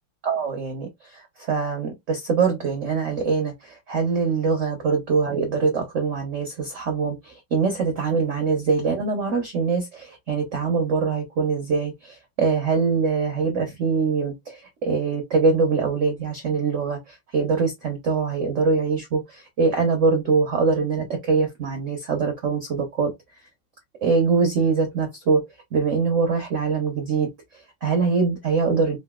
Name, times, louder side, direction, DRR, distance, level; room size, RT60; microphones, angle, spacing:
voice 1, 0.2-23.1 24.0-25.4 25.7-29.0, right 4 dB, 75° right, 0.6 m, -23 dB
3.8 x 2.1 x 2.3 m
omnidirectional pair, 2.2 m